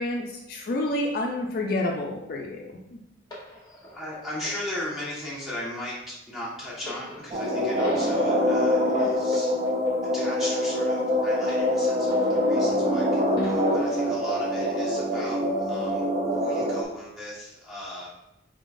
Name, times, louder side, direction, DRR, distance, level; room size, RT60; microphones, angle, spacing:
voice 1, 0.0-3.0, left 1 dB, 50° left, 0 dB, 0.4 m, -29 dB
sound 1, 3.3-13.0 13.3-14.4 15.2-15.3, equal, 20° left, 1.0 m, -43 dB
voice 2, 3.9-5.9 6.3-9.5 10.1-18.1, left 1 dB, ahead, -8 dB, 1.2 m, -37 dB
sound 2, 7.3-16.8, left 1 dB, 35° right, 0.4 m, -24 dB
3.9 x 3.6 x 2.5 m, 0.86 s
head